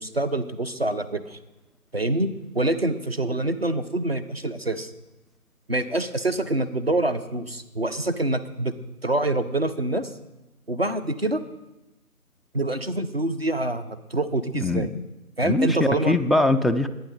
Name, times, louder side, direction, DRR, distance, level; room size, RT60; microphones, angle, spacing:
voice 1, 0.0-1.4 1.9-2.3 2.5-4.9 5.7-8.7 9.0-10.1 10.7-11.4 12.5-14.9 15.4-16.2, right 2 dB, 45° right, 10 dB, 0.7 m, -26 dB
voice 2, 14.5-14.9 15.4-16.9, left 2 dB, ahead, 12 dB, 0.4 m, -22 dB
20.0 x 9.0 x 3.7 m, 1.0 s
figure-of-eight pair, 170°, 44 cm